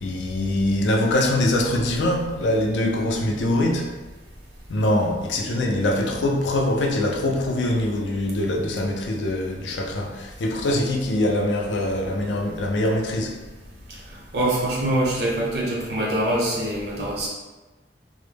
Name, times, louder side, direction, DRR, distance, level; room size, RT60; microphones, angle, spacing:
voice 1, 0.0-3.9 4.7-13.3, left 1 dB, 85° left, 1 dB, 0.4 m, -23 dB
voice 2, 14.3-17.3, right 1 dB, 65° right, -5 dB, 0.7 m, -24 dB
2.1 x 2.0 x 3.2 m, 1.2 s
head